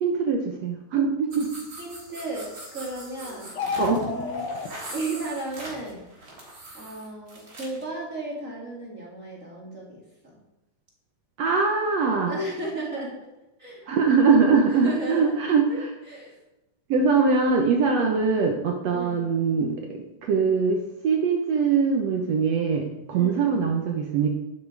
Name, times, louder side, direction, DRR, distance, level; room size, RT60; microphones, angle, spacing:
voice 1, 0.0-1.5 3.8-4.0 11.4-12.3 13.9-15.7 16.9-19.8 20.2-24.4, right 5 dB, 65° right, 2 dB, 2.0 m, -22 dB
sound 1, 1.3-7.9, right 1 dB, 40° right, 4.3 m, -42 dB
voice 2, 1.8-6.0 6.7-10.4 12.2-13.2 13.6-13.8 14.7-15.4 15.7-16.4 17.8-18.2 18.9-19.3 23.1-23.5, right 2 dB, 25° right, -3 dB, 3.3 m, -35 dB
sound 2, 3.5-4.7, left 5 dB, 65° left, 1.1 m, -30 dB
12.0 x 11.0 x 4.8 m, 0.93 s
omnidirectional pair, 3.5 m